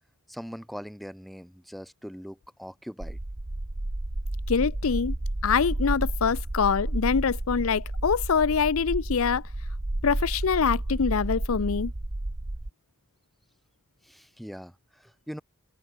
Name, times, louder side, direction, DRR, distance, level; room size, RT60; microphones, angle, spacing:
voice 1, 0.3-3.2 14.0-15.4, equal, ahead, 2.1 m, -41 dB
sound 1, 3.0-12.7, right 1 dB, 40° right, 1.2 m, -31 dB
voice 2, 4.5-5.1 5.4-9.4 10.0-11.9, left 6 dB, 80° left, 0.6 m, -24 dB
open air
head